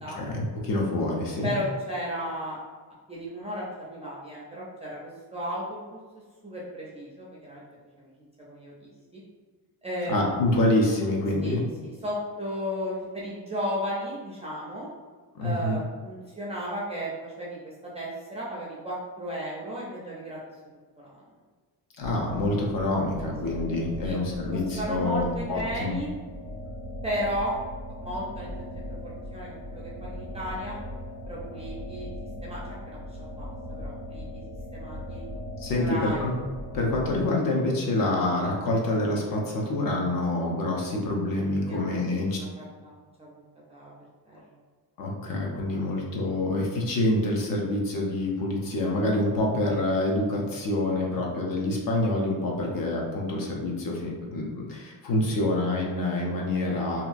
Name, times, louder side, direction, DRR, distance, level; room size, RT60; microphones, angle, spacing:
voice 1, 0.2-1.5 10.1-11.6 15.3-15.8 22.0-26.0 35.6-36.3 36.7-42.4 45.0-57.1, left 1 dB, 55° left, -1 dB, 0.6 m, -27 dB
voice 2, 1.4-2.6 3.1-6.0 6.4-7.6 8.0-8.1 8.5-9.2 9.8-10.3 11.4-11.5 11.8-14.9 15.4-20.4 21.0-21.2 23.5-23.6 24.0-24.2 24.5-26.1 27.0-27.5 28.0-30.8 31.3-32.1 32.4-34.4 34.7-35.2 35.7-36.3 41.7-43.3 43.7-43.9 44.3-44.4 45.7-45.8, equal, 15° right, -6 dB, 0.4 m, -35 dB
sound 1, 22.0-37.2, left 1 dB, 35° left, 1.4 m, -39 dB
2.8 x 2.3 x 2.4 m, 1.4 s
cardioid pair, 170°, 41 cm